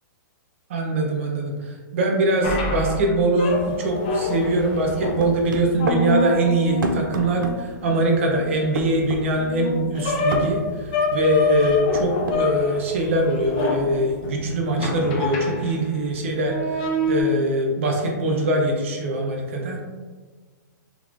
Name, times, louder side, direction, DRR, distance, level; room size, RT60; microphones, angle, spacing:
voice 1, 0.7-19.8, right 1 dB, 40° right, 0 dB, 0.6 m, -22 dB
sound 1, 2.4-16.0 16.4-17.2, left 2 dB, 25° left, 0.4 m, -27 dB
sound 2, 5.2-6.0 6.8-7.6 8.8-9.2 10.3-10.5 11.6-12.4, right 2 dB, 85° right, 0.5 m, -27 dB
3.6 x 3.1 x 2.4 m, 1.4 s
hypercardioid pair, 175°, 11 cm